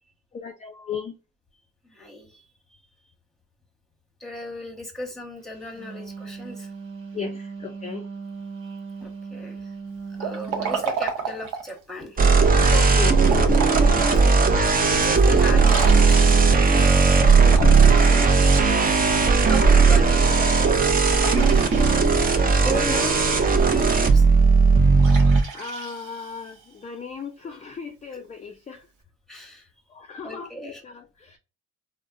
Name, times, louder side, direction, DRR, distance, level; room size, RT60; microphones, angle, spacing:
voice 1, 0.3-1.2 7.1-8.0 12.7-13.2 17.4-18.3 21.2-21.7 25.5-28.8 29.9-31.4, left 6 dB, 25° left, 0.3 m, -35 dB
voice 2, 1.8-2.4 4.2-6.7 9.0-9.6 10.2-12.2 14.4-16.9 19.4-20.8 22.6-24.2 28.1-28.2 29.3-29.7 30.2-30.8, equal, ahead, 1.0 m, -36 dB
Wind instrument woodwind instrument, 5.6-10.9, right 5 dB, 45° right, 1.1 m, -37 dB
Liquid, 10.2-11.8 13.2-14.3 14.8-14.9 15.6-16.6 17.4-19.1 21.1-22.4 25.0-26.6, right 5 dB, 85° right, 0.8 m, -32 dB
sound 1, 12.2-25.4, right 4 dB, 30° right, 0.5 m, -17 dB
3.4 x 2.1 x 2.5 m
cardioid pair, 90°, 30 cm